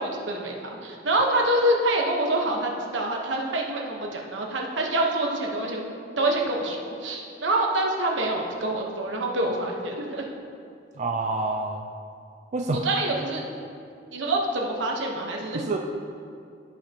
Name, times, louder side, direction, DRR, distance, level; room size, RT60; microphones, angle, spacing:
voice 1, 0.0-10.3 12.8-13.4 14.1-15.7, right 1 dB, 75° right, 0 dB, 1.2 m, -26 dB
voice 2, 11.0-11.8 12.5-12.9 15.7-15.8, right 3 dB, 40° right, 2 dB, 0.4 m, -27 dB
15.0 x 5.6 x 2.9 m, 2.5 s
head